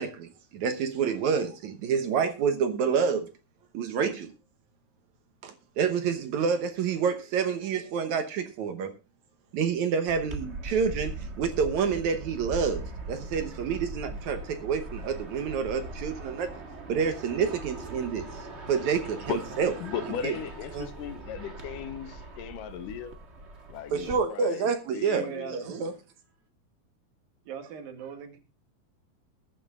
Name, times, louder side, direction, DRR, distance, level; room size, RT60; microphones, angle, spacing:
voice 1, 0.0-3.3 3.7-4.3 5.4-8.9 9.5-12.8 13.1-16.5 16.9-18.3 18.7-19.7 20.2-20.3 20.7-20.9 23.9-25.9, right 6 dB, 65° right, 2.1 m, -28 dB
sound 1, 10.1-24.2, right 2 dB, 40° right, 0.9 m, -40 dB
voice 2, 19.8-23.1 23.7-25.7, left 9 dB, 75° left, 2.4 m, -37 dB
voice 3, 25.2-26.0 27.5-28.4, right 7 dB, 85° right, 3.6 m, -39 dB
21.0 x 9.1 x 2.4 m
omnidirectional pair, 4.0 m